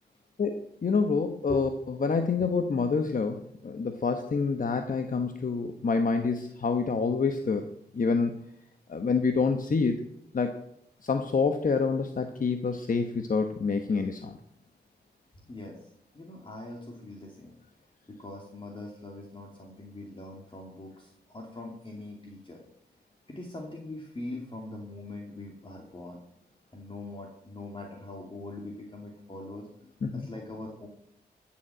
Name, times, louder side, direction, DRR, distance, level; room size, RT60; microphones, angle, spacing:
voice 1, 0.4-1.7 2.0-7.7 7.9-8.3 8.9-10.0 10.3-10.6 11.0-14.4 30.0-30.3, left 4 dB, 50° left, 7 dB, 1.0 m, -27 dB
voice 2, 15.5-17.5 18.1-22.6 23.3-26.2 26.7-30.9, left 2 dB, 30° left, 0 dB, 2.5 m, -42 dB
14.0 x 7.3 x 7.7 m, 0.77 s
cardioid pair, 80°, 17 cm